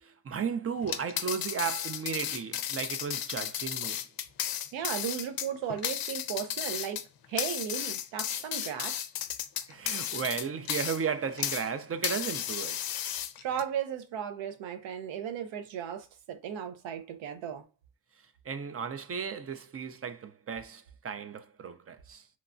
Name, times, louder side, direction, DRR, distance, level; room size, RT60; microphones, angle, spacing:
voice 1, 0.0-4.0 9.7-12.8 18.5-22.2, right 6 dB, 35° right, 0.5 m, -35 dB
sound 1, 0.8-11.7 12.0-13.6, left 10 dB, 55° left, 0.5 m, -34 dB
voice 2, 4.7-7.0 7.3-9.0 13.4-17.6, right 8 dB, 85° right, 0.7 m, -35 dB
3.1 x 2.1 x 2.5 m
cardioid pair, 60°, 44 cm